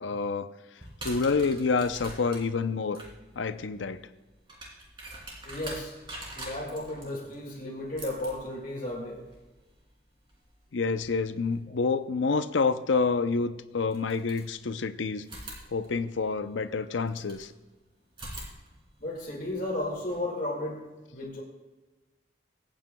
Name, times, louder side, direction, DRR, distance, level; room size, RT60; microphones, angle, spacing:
voice 1, 0.0-0.5 1.0-3.0 3.4-4.1 10.7-15.3 15.7-17.5, left 4 dB, 75° left, 11 dB, 0.6 m, -28 dB
sound 1, 0.8-11.6 13.1-13.2 13.9-14.8 15.2-17.5 18.1-20.1, right 1 dB, 25° right, 3.0 m, -46 dB
voice 2, 5.5-5.9 6.4-9.2 11.7-11.8 19.0-20.8 21.1-21.4, left 1 dB, 45° left, -3 dB, 2.0 m, -34 dB
24.0 x 9.1 x 2.3 m, 1.2 s
head